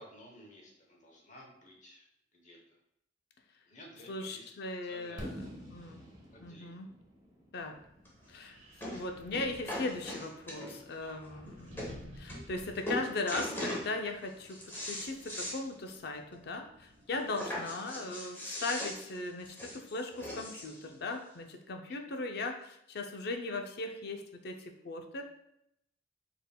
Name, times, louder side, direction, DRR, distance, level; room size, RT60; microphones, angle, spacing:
voice 1, 0.0-2.1 2.3-2.8 3.6-4.5 4.8-5.3 6.3-6.8 11.0-11.4 17.1-17.6, left 1 dB, 40° left, -1 dB, 0.9 m, -54 dB
voice 2, 4.1-6.0 6.4-6.9 7.5-7.8 8.3-8.5 8.8-25.2, left 2 dB, 60° left, 5 dB, 0.5 m, -38 dB
Fireworks, 5.2-9.0, equal, 20° right, 0.9 m, -47 dB
Wind, 7.6-17.5, equal, 85° right, 1.2 m, -55 dB
sound 1, 8.1-8.2 8.8-9.0 9.3-10.9 11.5-11.6 11.8-11.9 12.3-12.6 12.9-13.9 14.3-15.6 15.9-16.0 16.4-16.5 17.3-20.8 21.6-21.7, left 1 dB, 10° left, 0.9 m, -39 dB
4.3 x 3.5 x 2.2 m, 0.78 s
head